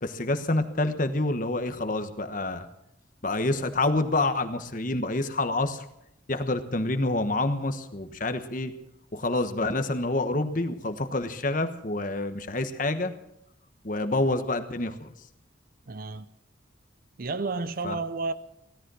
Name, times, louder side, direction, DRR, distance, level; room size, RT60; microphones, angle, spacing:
voice 1, 0.0-2.7 3.2-5.8 6.3-8.7 9.1-13.1 13.8-15.1 17.8-17.9, left 2 dB, 40° left, 1.2 m, -27 dB
voice 2, 15.9-16.3 17.2-18.3, right 3 dB, 45° right, 0.6 m, -31 dB
17.0 x 13.0 x 6.3 m
head